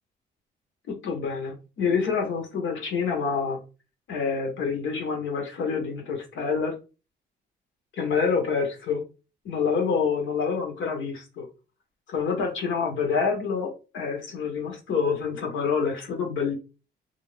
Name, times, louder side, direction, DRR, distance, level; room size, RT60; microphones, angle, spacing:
voice 1, 0.9-3.6 4.1-6.8 7.9-9.0 9.4-11.5 12.1-16.5, left 5 dB, 70° left, 3 dB, 1.0 m, -27 dB
2.5 x 2.4 x 3.2 m, 0.32 s
cardioid pair, 90°, 20 cm